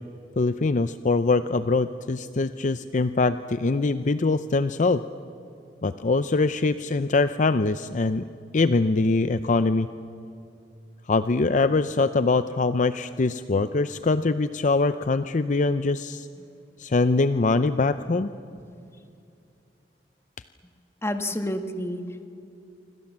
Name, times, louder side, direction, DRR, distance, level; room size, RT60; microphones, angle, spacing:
voice 1, 0.4-5.0 5.8-8.3 8.5-9.9 11.1-16.3 16.8-18.3, left 3 dB, 45° left, 12 dB, 0.5 m, -23 dB
voice 2, 18.5-18.9 21.0-22.3, left 1 dB, 15° left, 7 dB, 1.5 m, -31 dB
27.0 x 25.0 x 7.4 m, 2.6 s
head